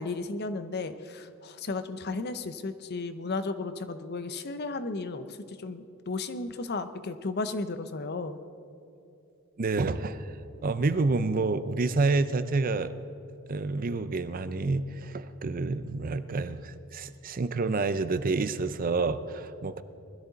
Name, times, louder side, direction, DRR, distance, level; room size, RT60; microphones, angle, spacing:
voice 1, 0.0-8.4, left 3 dB, 50° left, 11 dB, 0.7 m, -34 dB
voice 2, 9.6-10.3 10.6-12.9 13.5-19.8, right 3 dB, 40° right, 12 dB, 0.5 m, -28 dB
20.5 x 13.0 x 4.0 m, 2.7 s
head